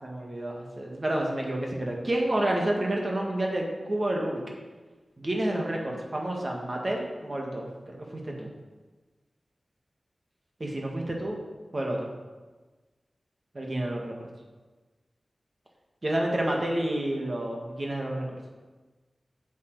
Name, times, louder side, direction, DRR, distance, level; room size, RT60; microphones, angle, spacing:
voice 1, 0.0-4.4 5.2-7.7 8.1-8.5 10.6-11.4 11.7-12.1 13.5-14.3 16.0-18.4, right 1 dB, 40° right, 0 dB, 1.8 m, -29 dB
8.2 x 7.6 x 4.8 m, 1.3 s
wide cardioid pair, 80°, 0 cm